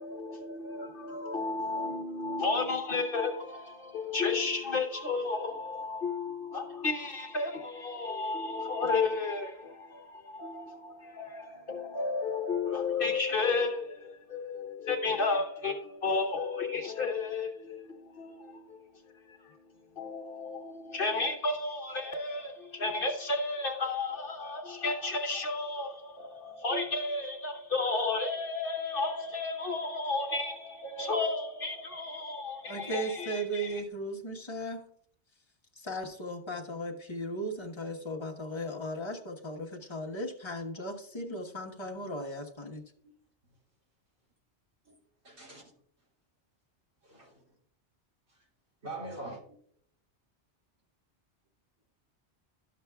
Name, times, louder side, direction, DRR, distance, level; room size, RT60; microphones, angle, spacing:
voice 1, 0.0-18.8 19.1-19.6 20.0-33.8, left 3 dB, 55° left, 1.1 m, -33 dB
voice 2, 32.7-34.9 35.8-42.8, right 1 dB, 25° left, 1.1 m, -37 dB
voice 3, 45.2-45.6 47.0-47.4 48.3-48.4 48.8-49.6, right 2 dB, 85° right, 3.4 m, -43 dB
12.0 x 7.3 x 2.3 m
omnidirectional pair, 1.1 m